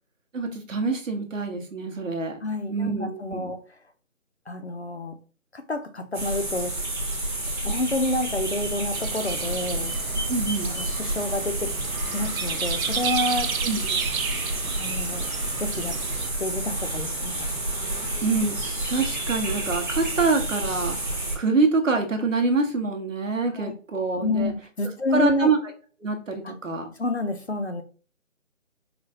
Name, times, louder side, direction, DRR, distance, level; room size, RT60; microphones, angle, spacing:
voice 1, 0.3-2.4 2.7-3.6 10.3-10.8 13.6-14.1 18.2-21.0 21.3-24.5 25.1-25.6 26.0-26.9, right 3 dB, 65° right, 1.1 m, -25 dB
voice 2, 2.4-3.6 4.5-5.2 5.5-6.7 7.6-9.9 10.7-11.7 12.1-13.5 14.8-15.3 15.6-16.0 16.4-17.5 17.9-18.0 23.5-23.7 24.2-25.5 26.4-26.5 27.0-27.8, left 2 dB, 50° left, 0.5 m, -29 dB
sound 1, 6.1-21.4, right 1 dB, 35° right, 1.2 m, -30 dB
sound 2, 8.9-16.3, right 7 dB, 80° right, 0.5 m, -33 dB
4.8 x 2.2 x 2.7 m
figure-of-eight pair, 180°, 42 cm